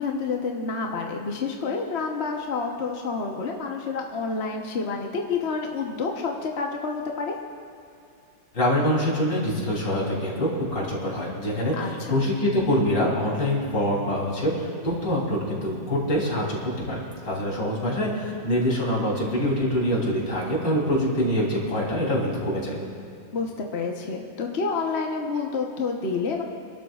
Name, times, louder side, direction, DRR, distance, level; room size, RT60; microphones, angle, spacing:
voice 1, 0.0-7.4 11.7-12.1 23.3-26.4, left 4 dB, 40° left, 1 dB, 1.1 m, -29 dB
voice 2, 8.5-22.8, equal, 75° left, -4 dB, 4.1 m, -25 dB
27.0 x 12.5 x 2.4 m, 2.5 s
omnidirectional pair, 2.0 m